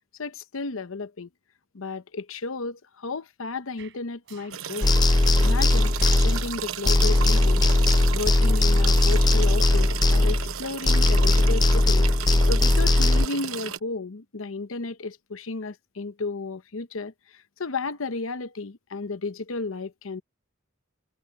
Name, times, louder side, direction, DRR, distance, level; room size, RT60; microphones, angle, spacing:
voice 1, 0.2-1.3 1.7-5.0 5.4-12.1 12.4-20.2, left 3 dB, 70° left, 0.9 m, -33 dB
sound 1, 3.8-4.0 4.2-5.1 5.9-6.2 7.0-7.3 8.4-8.8 9.2-9.3, right 8 dB, 65° right, 4.7 m, -50 dB
sound 2, 4.5-13.8, right 9 dB, 80° right, 0.9 m, -34 dB
sound 3, 4.8-6.6 6.9-10.6 10.9-13.3, left 2 dB, 20° left, 0.5 m, -19 dB
head